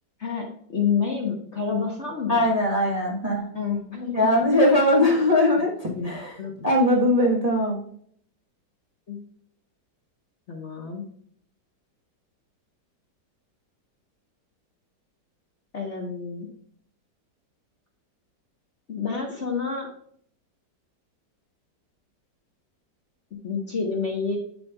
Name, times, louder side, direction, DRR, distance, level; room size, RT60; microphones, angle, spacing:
voice 1, 0.2-2.5 3.5-4.3 6.0-6.1 6.4-6.5 9.1-9.2 10.5-11.0 15.7-16.5 18.9-19.9 23.4-24.4, left 5 dB, 45° left, 0 dB, 1.1 m, -28 dB
voice 2, 2.3-3.4 4.1-6.4 6.6-7.8, left 1 dB, 25° right, -3 dB, 1.1 m, -20 dB
8.2 x 6.9 x 2.3 m, 0.63 s
omnidirectional pair, 2.0 m